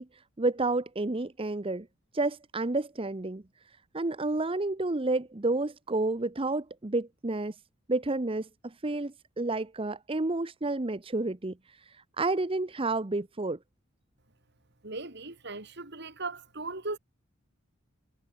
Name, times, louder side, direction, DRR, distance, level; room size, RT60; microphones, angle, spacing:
voice 1, 0.0-1.9 2.1-7.6 7.9-13.6, right 2 dB, 25° right, 0.8 m, -30 dB
voice 2, 14.8-17.0, right 3 dB, 55° right, 3.7 m, -38 dB
head